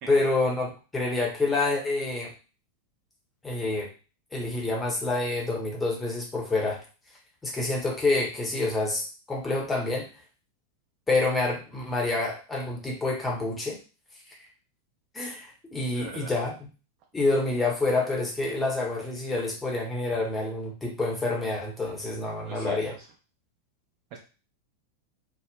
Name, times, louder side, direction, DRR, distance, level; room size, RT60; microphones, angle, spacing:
voice 1, 0.1-2.3 3.4-3.9 4.3-6.8 7.4-10.1 11.1-13.8 15.1-16.7 17.1-22.9, left 2 dB, 10° left, -2 dB, 0.8 m, -27 dB
voice 2, 15.8-16.3 22.4-23.1 24.1-24.2, right 6 dB, 45° right, 0 dB, 0.7 m, -41 dB
2.7 x 2.1 x 2.2 m, 0.33 s
figure-of-eight pair, 90°, 0 cm